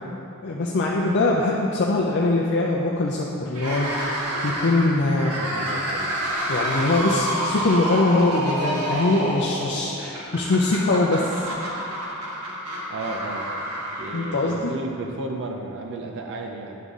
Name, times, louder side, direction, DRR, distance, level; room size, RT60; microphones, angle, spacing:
voice 1, 0.4-5.3 6.5-11.4 14.1-14.7, left 2 dB, 50° left, -2 dB, 0.5 m, -22 dB
sound 1, 3.5-14.8, right 1 dB, 90° right, 1.4 m, -29 dB
voice 2, 5.0-6.2 12.9-13.5 14.0-16.8, right 2 dB, 55° right, 2 dB, 0.5 m, -33 dB
9.5 x 3.7 x 5.4 m, 2.8 s
head